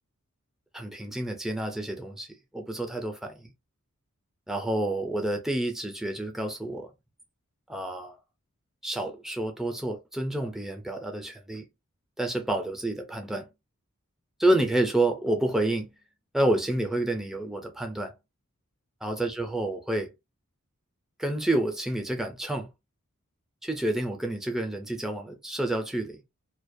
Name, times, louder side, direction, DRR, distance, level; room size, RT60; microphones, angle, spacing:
voice 1, 0.7-2.3 2.5-3.5 4.5-6.9 7.7-8.2 8.8-11.6 12.2-13.5 14.4-15.9 16.3-18.1 19.0-20.1 21.2-22.7 23.6-26.2, right 1 dB, ahead, 0.5 m, -29 dB
2.3 x 2.2 x 2.6 m
head